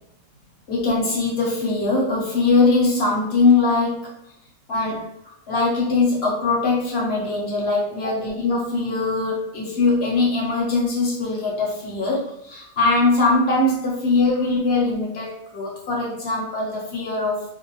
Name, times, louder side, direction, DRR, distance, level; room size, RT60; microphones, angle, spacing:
voice 1, 0.7-4.1 4.7-5.1 5.5-17.4, left 3 dB, 55° left, -3 dB, 0.9 m, -21 dB
2.5 x 2.0 x 2.9 m, 0.74 s
omnidirectional pair, 1.4 m